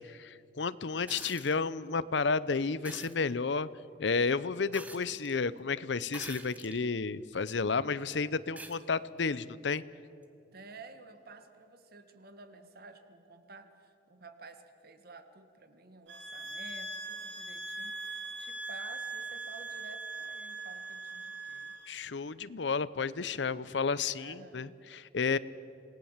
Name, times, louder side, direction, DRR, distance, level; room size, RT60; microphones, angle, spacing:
voice 1, 0.0-3.7 4.0-9.8 21.9-25.4, left 4 dB, 70° left, 17 dB, 0.7 m, -32 dB
sound 1, 1.1-1.6 2.8-3.2 4.7-5.3 6.1-6.8 7.5-7.6 8.6-8.8 10.2-10.3, right 2 dB, 10° right, 1.4 m, -46 dB
voice 2, 10.5-21.7 24.2-24.8, right 3 dB, 55° right, 9 dB, 1.7 m, -52 dB
sound 2, 16.1-21.9, right 3 dB, 80° right, 2.4 m, -41 dB
27.5 x 18.5 x 7.4 m, 2.7 s
head